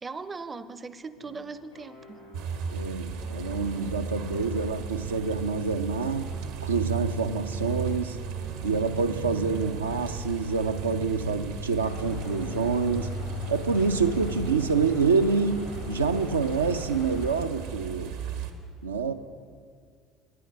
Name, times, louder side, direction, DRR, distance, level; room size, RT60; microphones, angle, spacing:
voice 1, 0.0-2.2, right 4 dB, 25° right, 14 dB, 0.5 m, -39 dB
sound 1, 1.2-2.7 3.1-7.0 7.4-11.3 11.7-15.7 16.0-17.9, left 1 dB, 90° left, 2.7 m, -50 dB
sound 2, 2.3-18.5, right 5 dB, 65° right, 0.8 m, -36 dB
voice 2, 2.7-6.3 6.6-8.2 8.6-13.2 13.5-18.2 18.8-19.1, right 4 dB, 85° right, 7 dB, 0.3 m, -27 dB
sound 3, 11.8-17.5, left 6 dB, 60° left, 0.6 m, -41 dB
9.9 x 9.5 x 5.2 m, 2.1 s
figure-of-eight pair, 60°, 0 cm